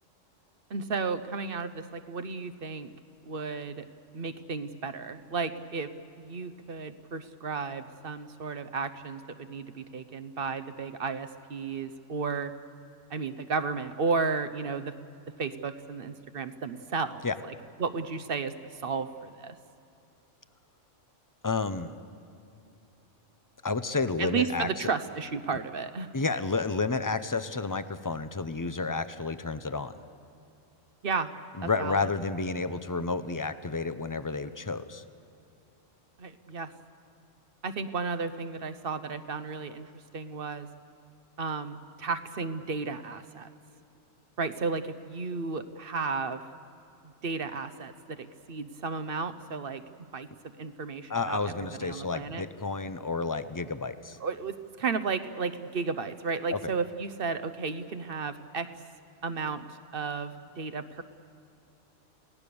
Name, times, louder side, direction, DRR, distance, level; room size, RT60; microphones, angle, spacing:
voice 1, 0.7-2.9 3.2-3.9 4.1-5.9 6.2-12.5 13.1-14.9 15.4-17.5 17.8-19.5 24.2-26.1 31.0-31.3 31.6-32.1 36.2-36.7 37.6-40.7 41.4-43.5 44.4-46.4 47.0-49.8 50.1-50.3 50.6-52.4 54.2-58.7 59.2-61.0, right 4 dB, 50° right, 11 dB, 0.9 m, -33 dB
voice 2, 21.4-21.9 23.6-24.9 26.1-29.9 31.6-35.0 51.1-54.2 56.5-56.6, left 4 dB, 25° left, 11 dB, 0.4 m, -31 dB
29.0 x 17.5 x 7.0 m, 2.7 s
omnidirectional pair, 1.3 m